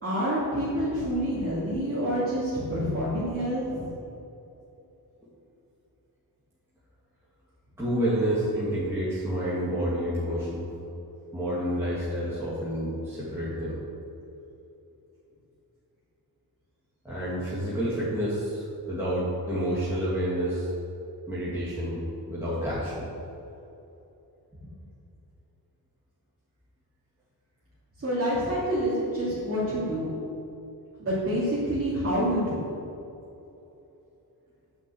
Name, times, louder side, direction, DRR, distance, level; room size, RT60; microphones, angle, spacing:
voice 1, 0.0-3.9 28.0-30.2 31.0-32.7, equal, 35° right, -11 dB, 2.8 m, -27 dB
voice 2, 7.8-10.7 11.3-13.8 17.0-20.7 21.3-22.0 22.3-22.9, equal, 5° right, -10 dB, 2.3 m, -29 dB
9.4 x 6.3 x 7.9 m, 2.9 s
wide cardioid pair, 150°, 37 cm